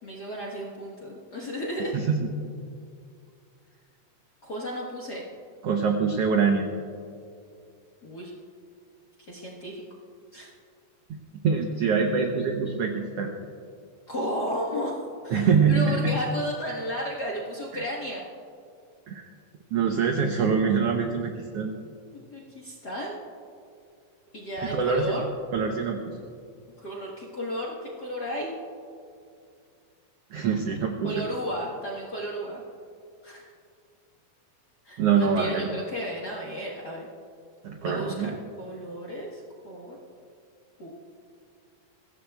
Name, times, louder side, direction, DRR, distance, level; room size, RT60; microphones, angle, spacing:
voice 1, 0.0-1.9 4.4-5.2 8.0-8.3 9.3-9.8 10.3-10.5 14.1-15.0 15.2-18.2 22.1-23.2 24.3-25.2 26.8-28.5 31.0-32.6 33.2-33.4 34.8-37.1 37.8-38.3 38.6-40.0 40.8-40.9, equal, 50° left, -4 dB, 1.2 m, -33 dB
voice 2, 1.9-2.3 5.6-6.7 11.4-13.3 15.3-16.1 17.7-17.8 19.1-19.2 19.7-21.7 24.6-25.1 25.5-26.2 30.3-31.3 35.0-35.8 37.6-38.3, right 5 dB, 80° right, 3 dB, 1.3 m, -24 dB
22.0 x 16.0 x 2.3 m, 2.4 s
omnidirectional pair, 3.9 m